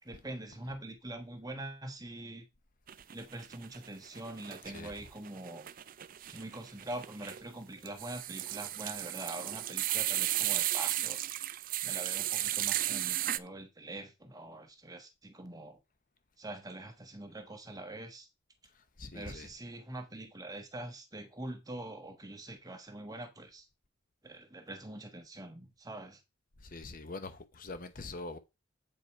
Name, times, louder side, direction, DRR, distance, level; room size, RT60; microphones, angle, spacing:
voice 1, 0.0-2.5 3.1-5.7 6.3-11.4 11.8-15.8 16.4-18.3 19.1-23.7 24.2-26.2, right 1 dB, 20° right, 1.3 m, -44 dB
sound 1, 2.9-3.9 4.2-13.4, right 14 dB, 40° right, 0.4 m, -34 dB
voice 2, 19.0-19.5 26.6-28.4, left 3 dB, 40° left, 0.8 m, -43 dB
8.4 x 5.3 x 4.4 m
head